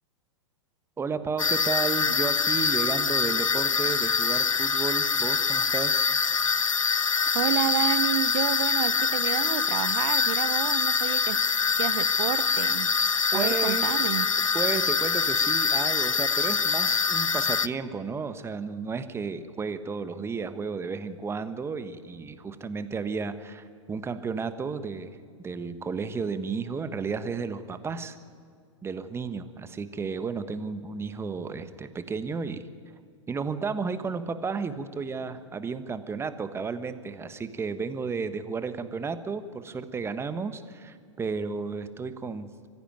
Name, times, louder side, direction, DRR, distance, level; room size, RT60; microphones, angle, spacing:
voice 1, 1.0-6.0 13.3-13.9 14.5-25.1 25.4-28.2 28.8-32.7 33.3-42.5, right 5 dB, 15° right, 12 dB, 1.3 m, -33 dB
sound 1, 1.4-17.7, left 5 dB, 90° left, 0.5 m, -25 dB
voice 2, 7.3-11.4 11.7-12.9 13.3-14.3, right 15 dB, 50° right, 18 dB, 0.8 m, -30 dB
24.0 x 15.5 x 9.2 m, 2.2 s
figure-of-eight pair, 100°, 16 cm